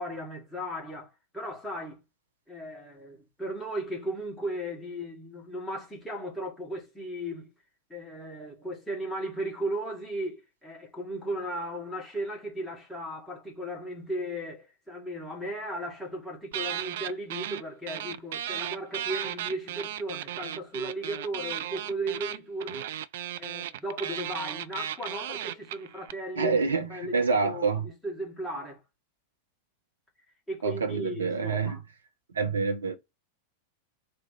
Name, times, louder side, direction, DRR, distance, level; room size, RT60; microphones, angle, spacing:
voice 1, 0.0-2.0 2.5-7.5 7.9-22.9 23.4-28.8 30.5-31.8, right 1 dB, 5° left, 1.9 m, -36 dB
sound 1, 16.5-17.6 17.9-26.1, right 11 dB, 55° right, 0.3 m, -35 dB
voice 2, 26.3-27.9 30.6-31.8 32.3-32.9, right 4 dB, 70° right, 1.0 m, -27 dB
3.4 x 3.3 x 4.7 m
figure-of-eight pair, 90°, 0 cm